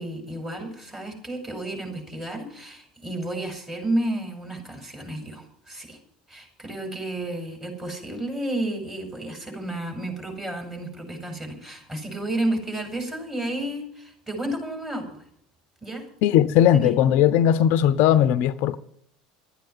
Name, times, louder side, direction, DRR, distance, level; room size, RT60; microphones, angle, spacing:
voice 1, 0.0-6.0 6.3-15.2 15.8-16.0 16.7-16.9, right 1 dB, 15° right, 5.8 m, -31 dB
voice 2, 16.2-18.8, left 10 dB, 60° left, 0.7 m, -18 dB
12.5 x 9.1 x 9.5 m
hypercardioid pair, 75°, 4 cm